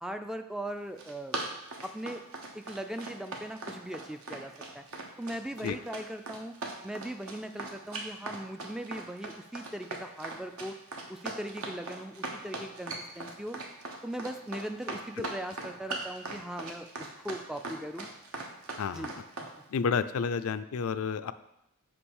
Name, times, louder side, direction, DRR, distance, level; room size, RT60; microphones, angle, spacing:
voice 1, 0.0-1.4 1.8-2.2 2.5-4.8 5.2-6.5 6.8-10.8 11.1-13.6 14.0-18.1 18.9-19.1 19.4-19.5, right 1 dB, 5° right, 7 dB, 0.3 m, -39 dB
Run, 0.8-19.5, right 3 dB, 70° right, 1.3 m, -39 dB
voice 2, 19.7-21.3, left 6 dB, 70° left, 12 dB, 0.4 m, -30 dB
5.9 x 5.2 x 6.3 m, 0.82 s
head